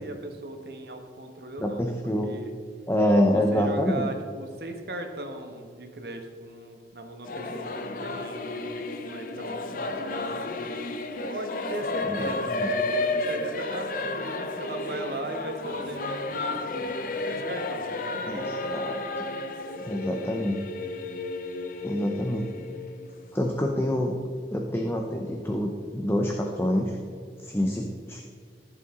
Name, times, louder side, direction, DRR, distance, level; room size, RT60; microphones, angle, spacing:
voice 1, 0.0-2.5 3.3-10.6 11.2-18.6, right 1 dB, 65° right, 4 dB, 1.3 m, -38 dB
voice 2, 1.6-2.3 2.9-4.1 12.1-12.3 12.6-12.7 18.3-19.2 19.9-20.6 21.8-22.5 23.3-24.2 24.5-27.0 27.4-28.2, left 1 dB, 15° left, 2 dB, 0.7 m, -26 dB
Singing / Musical instrument, 7.2-23.6, left 2 dB, 50° left, 0.6 m, -32 dB
14.5 x 6.8 x 3.8 m, 2.2 s
head